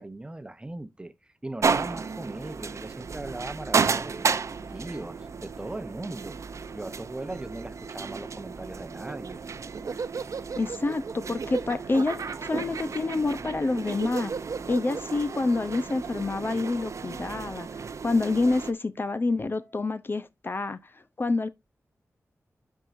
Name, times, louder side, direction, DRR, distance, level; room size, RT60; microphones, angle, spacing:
voice 1, 0.0-6.4 6.7-9.4, right 2 dB, 20° right, 0.8 m, -39 dB
sound 1, 1.6-18.7, right 5 dB, 65° right, 0.6 m, -33 dB
sound 2, 1.9-20.2, equal, 60° left, 5.2 m, -58 dB
Laughter, 8.9-17.3, right 5 dB, 85° right, 0.9 m, -36 dB
voice 2, 10.6-14.3 14.7-21.5, left 3 dB, 40° left, 0.6 m, -28 dB
12.0 x 4.7 x 2.5 m
wide cardioid pair, 105°, 6 cm